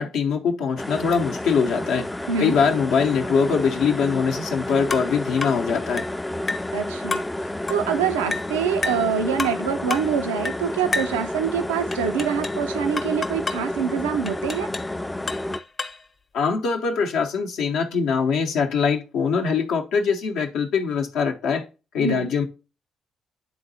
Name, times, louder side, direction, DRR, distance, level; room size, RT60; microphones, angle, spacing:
voice 1, 0.0-2.1 2.4-6.0 16.3-21.6 21.9-22.4, left 6 dB, 75° left, 0.7 m, -22 dB
sound 1, 0.8-15.6, left 1 dB, 15° left, 0.3 m, -30 dB
sound 2, 4.9-5.1 5.4-5.6 6.0-6.2 6.5-6.7 7.1-7.3 7.7-7.9 8.3-8.5 8.8-9.1 9.4-9.6 9.9-10.1 10.4-10.6 10.9-11.2 11.9-12.6 13.0-13.7 14.3-14.9 15.3-16.0, left 3 dB, 40° left, 0.8 m, -30 dB
voice 2, 6.7-7.2 7.7-14.7 22.0-22.3, right 7 dB, 85° right, 0.3 m, -25 dB
10.0 x 4.0 x 2.7 m
hypercardioid pair, 40°, 0 cm